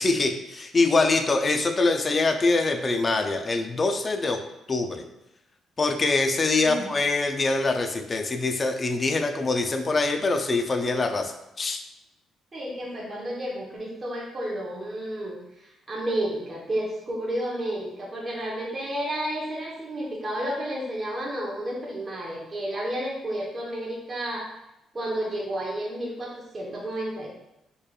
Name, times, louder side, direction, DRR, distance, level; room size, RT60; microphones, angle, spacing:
voice 1, 0.0-4.4 4.7-5.0 5.8-11.8, left 3 dB, 35° left, 5 dB, 0.5 m, -24 dB
voice 2, 6.6-6.9 12.5-24.5 24.9-27.3, right 1 dB, 30° right, -4 dB, 1.1 m, -31 dB
4.4 x 3.3 x 2.4 m, 0.88 s
cardioid pair, 90°, 0 cm